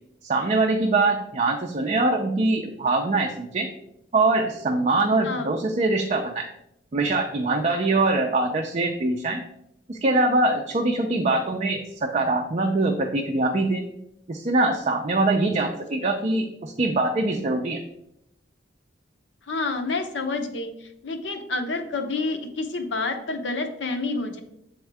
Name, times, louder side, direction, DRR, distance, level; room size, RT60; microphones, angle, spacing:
voice 1, 0.2-3.7 4.1-6.5 6.9-9.4 9.9-13.9 14.3-17.8, right 2 dB, 40° right, 3 dB, 0.4 m, -23 dB
voice 2, 19.5-24.4, left 3 dB, 80° left, 5 dB, 0.7 m, -29 dB
8.0 x 3.6 x 3.4 m, 0.79 s
head